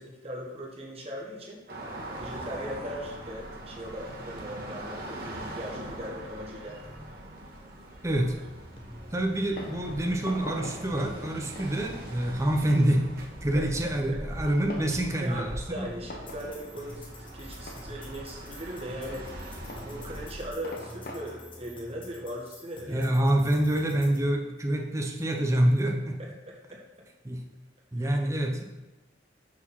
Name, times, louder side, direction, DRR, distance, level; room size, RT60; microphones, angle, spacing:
voice 1, 0.0-1.6 2.2-6.8 13.5-13.7 14.1-14.2 15.0-19.3 19.8-23.1 26.2-26.8 28.0-28.2, equal, 35° right, -2 dB, 1.6 m, -39 dB
sound 1, 1.7-20.5, right 1 dB, 55° right, 1.5 m, -42 dB
voice 2, 8.0-8.4 9.1-15.9 22.9-26.2 27.2-27.4 27.9-28.7, right 1 dB, 15° right, 1 dB, 0.8 m, -27 dB
sound 2, 8.3-24.3, left 1 dB, 25° left, 1.1 m, -48 dB
Fireworks, 9.3-23.5, equal, 50° left, 1.3 m, -46 dB
6.2 x 5.0 x 5.6 m, 1.1 s
head